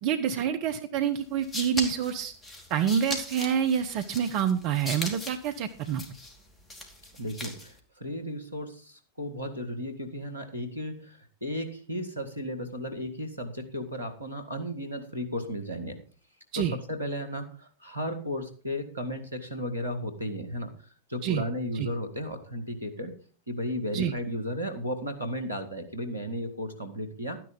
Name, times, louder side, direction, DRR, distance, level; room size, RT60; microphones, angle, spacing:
voice 1, 0.0-2.3 2.7-6.0 16.5-16.8 21.2-21.4 21.7-21.9 23.9-24.1, right 8 dB, 45° right, 8 dB, 0.8 m, -27 dB
sound 1, 1.2-7.8, left 1 dB, 15° left, 2.6 m, -39 dB
voice 2, 7.1-16.0 16.6-20.7 21.1-23.1 23.5-27.4, equal, 85° right, 8 dB, 1.9 m, -34 dB
12.5 x 10.0 x 3.9 m, 0.40 s
figure-of-eight pair, 90°, 0 cm